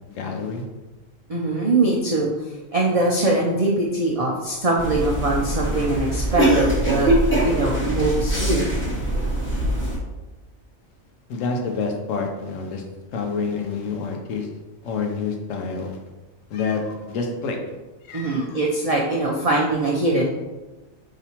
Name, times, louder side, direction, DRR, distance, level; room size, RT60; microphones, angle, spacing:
voice 1, 0.1-0.6 11.3-12.8 13.1-14.5 14.8-16.0 16.5-17.6 18.1-18.6, left 4 dB, 75° left, 2 dB, 1.0 m, -28 dB
voice 2, 1.3-2.3 2.7-7.1 7.4-8.7 18.1-20.2, right 2 dB, 75° right, -3 dB, 0.3 m, -22 dB
sound 1, 4.8-10.0, right 1 dB, 10° left, 0.8 m, -22 dB
5.0 x 2.8 x 2.9 m, 1.1 s
omnidirectional pair, 1.4 m